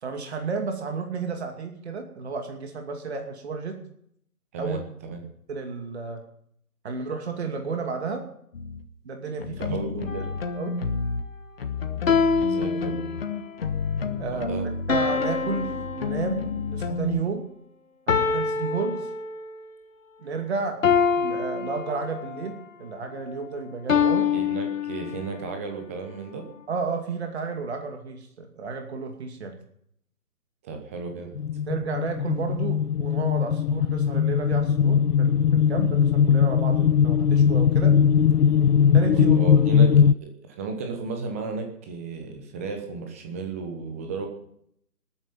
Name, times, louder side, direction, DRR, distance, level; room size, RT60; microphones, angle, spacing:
voice 1, 0.0-3.8 4.6-4.8 5.5-6.2 6.8-8.2 9.0-9.8 10.6-10.7 14.2-14.5 14.9-17.4 18.1-19.1 20.2-20.8 21.2-22.5 22.8-24.3 26.7-29.5 31.7-37.9 38.9-39.4, right 5 dB, 45° right, 4 dB, 2.6 m, -32 dB
voice 2, 4.5-5.2 9.6-10.3 12.5-13.0 14.3-14.7 24.3-26.5 30.6-31.4 39.1-39.9 40.2-44.3, right 4 dB, 10° right, 4 dB, 0.9 m, -34 dB
sound 1, 8.5-8.8 9.4-11.2 11.6-17.2, left 4 dB, 40° left, 1.2 m, -31 dB
sound 2, 10.1-10.5 12.1-13.5 14.9-16.7 18.1-19.7 20.8-22.5 23.9-25.5, left 6 dB, 55° left, 1.4 m, -25 dB
sound 3, 31.4-40.1, left 7 dB, 75° left, 0.6 m, -20 dB
19.5 x 9.6 x 5.5 m, 0.69 s
figure-of-eight pair, 150°, 47 cm